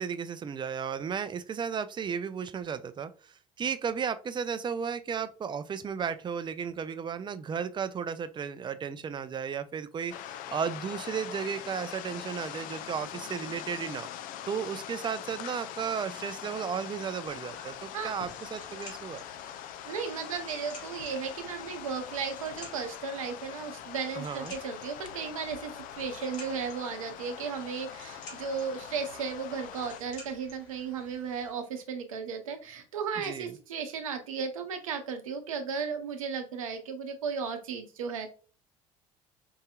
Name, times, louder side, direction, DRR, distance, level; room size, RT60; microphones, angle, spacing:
voice 1, 0.0-14.1 14.5-19.2 24.2-24.5 33.2-33.5, right 7 dB, 25° right, 12 dB, 0.5 m, -34 dB
sound 1, 10.1-30.0, left 11 dB, 55° left, 0.4 m, -43 dB
sound 2, 17.3-31.5, left 2 dB, 75° left, 1.3 m, -52 dB
voice 2, 19.8-38.3, right 6 dB, 80° right, 6 dB, 0.7 m, -35 dB
4.7 x 2.7 x 2.3 m, 0.37 s
hypercardioid pair, 60°, 17 cm